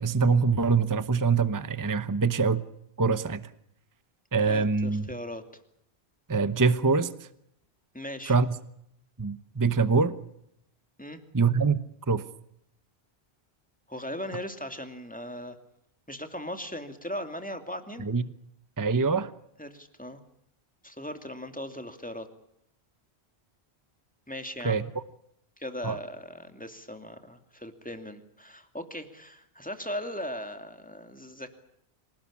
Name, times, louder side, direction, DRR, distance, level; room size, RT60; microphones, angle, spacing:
voice 1, 0.0-2.6 3.0-3.4 4.3-5.1 6.3-7.3 8.3-8.6 9.2-10.2 11.3-12.2 18.0-18.2 18.8-19.3 24.6-24.9 25.8-26.0, right 4 dB, 20° right, 13 dB, 0.9 m, -24 dB
voice 2, 4.4-5.4 7.9-8.3 11.0-11.2 13.9-15.6 16.1-18.1 19.6-20.2 20.8-22.3 24.3-24.8 25.6-31.5, left 1 dB, 10° left, 6 dB, 2.6 m, -38 dB
26.5 x 18.5 x 8.6 m, 0.76 s
omnidirectional pair, 1.1 m